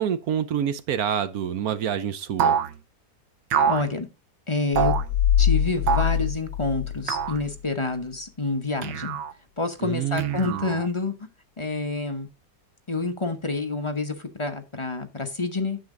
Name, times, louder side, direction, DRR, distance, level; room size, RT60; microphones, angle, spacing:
voice 1, 0.0-2.6 9.8-10.8, right 9 dB, 65° right, 1.1 m, -27 dB
sound 1, 2.4-2.7 3.5-3.9 4.8-5.1 5.9-6.2 7.1-7.4 8.8-9.3 10.2-10.9, right 7 dB, 85° right, 1.4 m, -25 dB
voice 2, 3.7-4.1 4.5-4.9 5.4-9.2 9.6-11.3 11.6-12.3 12.9-15.8, left 3 dB, 25° left, 0.7 m, -28 dB
sound 2, 4.7-7.6, left 9 dB, 75° left, 1.5 m, -24 dB
9.1 x 7.3 x 3.8 m
omnidirectional pair, 1.9 m